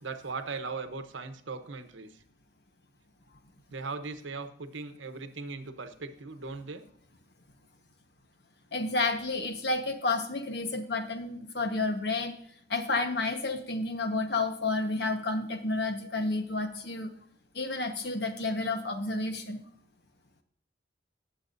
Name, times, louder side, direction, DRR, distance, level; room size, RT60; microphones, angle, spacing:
voice 1, 0.0-2.2 3.7-6.8, right 4 dB, 80° right, 8 dB, 1.0 m, -39 dB
voice 2, 8.7-12.3 12.7-17.1 17.5-19.6, left 3 dB, 55° left, 6 dB, 1.2 m, -30 dB
19.0 x 7.2 x 2.6 m, 0.65 s
head